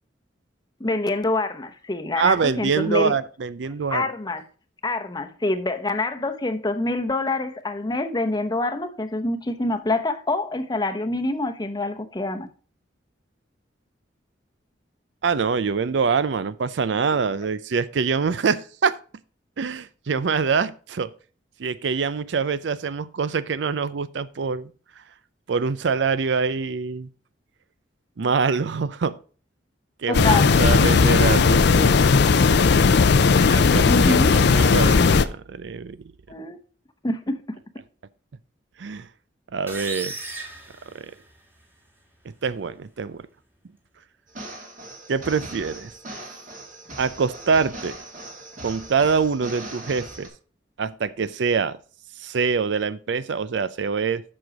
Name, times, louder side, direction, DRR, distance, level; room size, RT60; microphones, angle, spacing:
voice 1, 0.8-3.1 3.9-4.4 4.8-12.5 30.1-30.5 33.8-34.3 36.3-36.6 37.0-37.4, left 2 dB, 25° left, 0.8 m, -26 dB
voice 2, 2.2-4.1 15.2-19.0 19.6-21.1 21.6-24.7 25.5-27.1 28.2-29.2 30.0-32.0 33.4-36.0 38.8-39.1 39.5-40.1 40.9-41.1 42.4-43.2 45.1-45.9 47.0-48.0 48.6-50.3 50.8-51.8 52.2-54.2, right 5 dB, 70° right, 0.5 m, -25 dB
sound 1, 30.1-35.2, left 4 dB, 65° left, 0.5 m, -16 dB
sound 2, 39.7-41.6, right 2 dB, 10° right, 1.7 m, -36 dB
sound 3, 44.3-50.3, right 2 dB, 45° right, 2.2 m, -39 dB
7.6 x 6.3 x 5.1 m
head